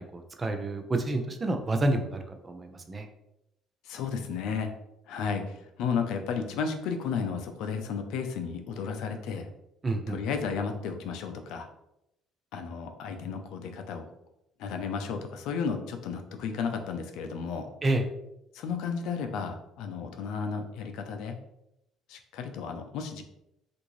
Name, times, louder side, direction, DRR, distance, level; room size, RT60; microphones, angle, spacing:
voice 1, 0.0-3.1 9.8-10.2 17.8-18.1, right 2 dB, 25° right, 6 dB, 0.5 m, -29 dB
voice 2, 3.8-4.7 5.1-9.5 10.1-11.7 12.5-14.1 14.6-17.7 18.5-21.4 22.1-23.2, left 6 dB, 80° left, 6 dB, 0.4 m, -33 dB
3.5 x 2.5 x 3.1 m, 0.84 s
cardioid pair, 105°, 0 cm